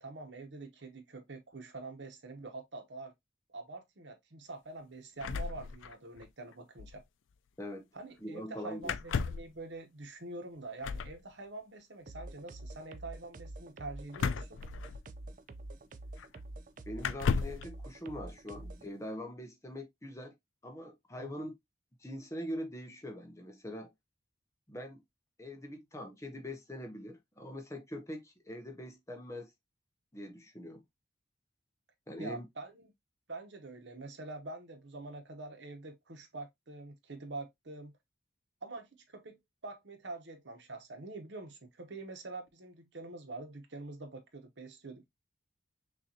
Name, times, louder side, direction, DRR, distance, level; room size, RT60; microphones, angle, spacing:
voice 1, 0.0-3.1 3.5-7.0 7.9-14.6 21.2-21.3 32.2-32.9 33.3-37.9 38.6-45.0, right 2 dB, 70° right, 1.0 m, -45 dB
sound 1, 5.2-6.3 6.5-6.6 6.8-7.0 8.8-9.6 10.8-11.2 14.1-15.3 16.2-16.3 17.0-17.7, left 5 dB, 85° left, 0.4 m, -34 dB
voice 2, 7.6-7.9 8.2-8.9 16.9-20.4 20.6-21.5 22.0-23.9 24.7-25.0 25.4-29.5 30.1-30.8 32.1-32.5, equal, 15° left, 0.7 m, -43 dB
sound 2, 12.1-18.9, right 2 dB, 40° right, 0.4 m, -47 dB
6.3 x 2.6 x 2.8 m
head